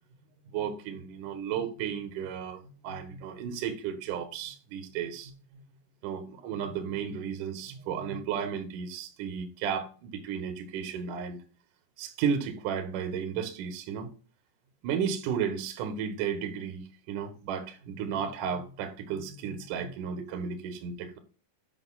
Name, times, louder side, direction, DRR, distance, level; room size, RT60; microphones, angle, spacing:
voice 1, 0.5-5.3 6.0-11.4 12.0-14.1 14.8-21.2, right 7 dB, 70° right, 2.0 m, -33 dB
8.1 x 5.5 x 4.0 m
omnidirectional pair, 5.7 m